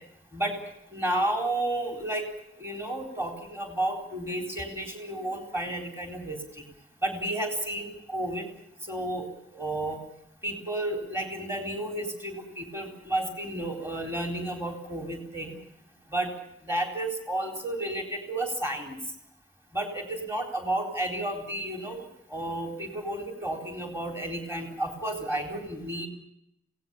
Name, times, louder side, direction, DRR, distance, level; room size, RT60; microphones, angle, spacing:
voice 1, 0.9-2.3 2.6-6.6 7.0-8.4 8.8-9.3 9.5-10.0 10.4-15.5 16.1-16.3 16.6-19.0 19.7-22.0 22.3-26.1, right 1 dB, 15° right, 4 dB, 4.0 m, -32 dB
26.0 x 18.5 x 7.1 m, 0.77 s
head